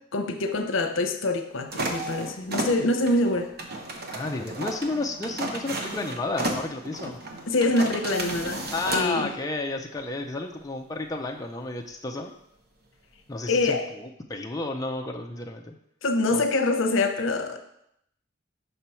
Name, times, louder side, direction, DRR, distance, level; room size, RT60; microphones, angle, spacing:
voice 1, 0.1-3.5 7.5-9.3 13.5-13.9 16.0-17.6, left 2 dB, 75° left, 7 dB, 0.7 m, -25 dB
sound 1, 1.7-9.1, right 2 dB, 50° right, 0.9 m, -33 dB
voice 2, 4.1-7.2 8.7-12.3 13.3-15.8 16.3-16.4, left 2 dB, 20° left, 1 dB, 0.4 m, -32 dB
6.0 x 4.5 x 5.6 m, 0.76 s
head